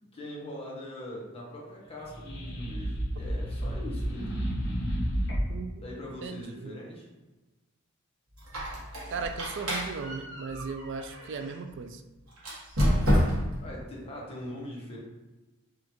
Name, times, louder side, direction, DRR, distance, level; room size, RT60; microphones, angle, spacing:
voice 1, 0.1-4.4 5.8-7.1 13.6-15.0, left 1 dB, 30° left, -3 dB, 0.9 m, -41 dB
sound 1, 2.0-5.7, equal, 55° left, 1.1 m, -31 dB
voice 2, 5.5-5.8 6.2-6.8 9.1-12.0, right 5 dB, 60° right, 7 dB, 0.3 m, -37 dB
Squeak, 8.4-11.6 12.4-13.6, equal, 85° right, 1.3 m, -29 dB
4.9 x 2.5 x 3.0 m, 1.1 s
head